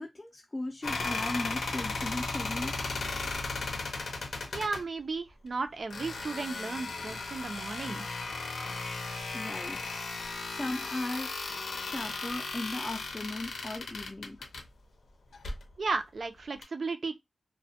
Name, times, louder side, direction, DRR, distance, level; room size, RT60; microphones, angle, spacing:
voice 1, 0.0-2.9 9.3-9.8 10.5-11.3 11.7-14.4, left 2 dB, 25° left, 0.4 m, -37 dB
sound 1, 0.8-4.8 5.9-14.6 15.3-15.6 16.6-16.7, left 3 dB, 80° left, 0.6 m, -36 dB
voice 2, 4.5-8.0 15.8-17.2, right 4 dB, 60° right, 0.4 m, -34 dB
2.1 x 2.0 x 2.7 m
wide cardioid pair, 80°, 0 cm